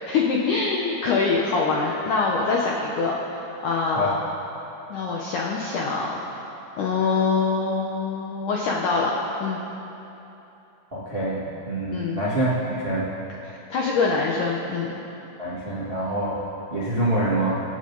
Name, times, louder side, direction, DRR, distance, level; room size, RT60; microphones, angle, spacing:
voice 1, 0.1-3.2 3.6-4.1 4.9-6.2 6.8-9.6 11.9-12.3 13.5-15.0, left 4 dB, 75° left, -3 dB, 1.9 m, -24 dB
voice 2, 10.9-13.1 15.4-17.6, right 1 dB, 30° right, -7 dB, 1.0 m, -26 dB
25.5 x 9.0 x 4.0 m, 2.9 s
omnidirectional pair, 4.9 m